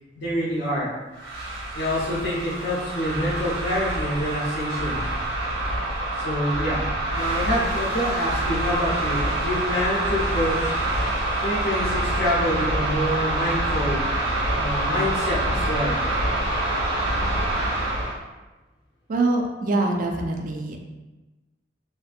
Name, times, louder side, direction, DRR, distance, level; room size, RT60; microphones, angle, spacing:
voice 1, 0.2-0.9 1.7-5.0 6.2-10.7 11.4-14.0 14.5-16.0, equal, 70° left, -7 dB, 0.7 m, -26 dB
sound 1, 1.1-18.2, right 1 dB, 85° right, 1.0 m, -26 dB
voice 2, 19.1-20.8, right 2 dB, 45° right, 2 dB, 0.3 m, -24 dB
2.6 x 2.4 x 2.5 m, 1.1 s
head